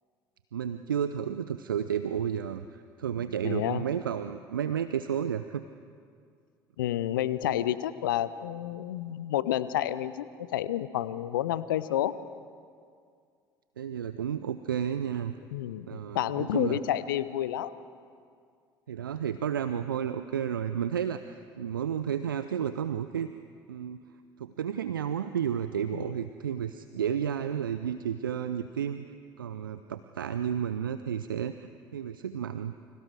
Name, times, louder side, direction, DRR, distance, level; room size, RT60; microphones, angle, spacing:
voice 1, 0.5-5.6 13.8-15.3 15.9-16.8 18.9-23.3 23.7-24.0 24.4-29.1 29.4-32.7, right 8 dB, 80° right, 11 dB, 0.5 m, -32 dB
voice 2, 3.4-3.8 6.8-12.1 15.5-17.7 25.9-26.0, left 12 dB, 70° left, 16 dB, 0.7 m, -30 dB
29.0 x 25.5 x 3.5 m, 2.2 s
figure-of-eight pair, 60°, 11 cm